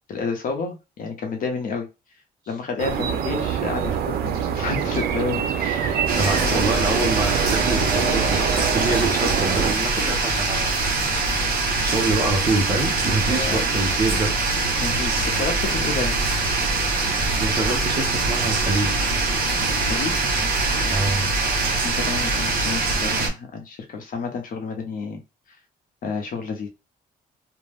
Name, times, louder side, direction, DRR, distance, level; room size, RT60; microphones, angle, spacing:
voice 1, 0.1-1.9 2.5-6.0 6.4-6.6 13.3-13.6 14.8-16.1 19.8-20.2 21.8-25.2 26.0-26.7, left 4 dB, 60° left, 4 dB, 0.8 m, -30 dB
sound 1, 2.8-9.7, right 8 dB, 90° right, 0.4 m, -25 dB
voice 2, 6.1-10.7 11.8-14.3 17.4-18.9 20.9-21.2, right 2 dB, 25° right, 2 dB, 0.7 m, -25 dB
sound 2, 6.1-23.3, right 3 dB, 70° right, 1.0 m, -23 dB
2.5 x 2.2 x 3.3 m, 0.27 s
cardioid pair, 175°, 16 cm